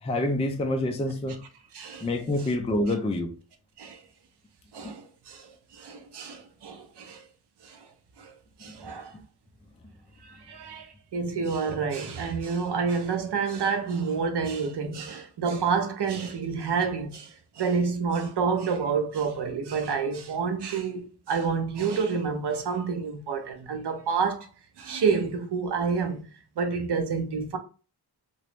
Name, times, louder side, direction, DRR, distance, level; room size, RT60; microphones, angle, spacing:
voice 1, 0.0-1.4 2.0-3.3 4.8-4.9, left 1 dB, 15° left, 0.3 m, -27 dB
voice 2, 1.7-2.1 3.8-4.0 4.7-7.2 7.6-7.9 8.2-8.3 8.6-9.1 10.2-24.5 24.8-26.3 26.6-27.6, right 5 dB, 80° right, 0.7 m, -29 dB
3.0 x 2.5 x 3.2 m
wide cardioid pair, 165°, 40 cm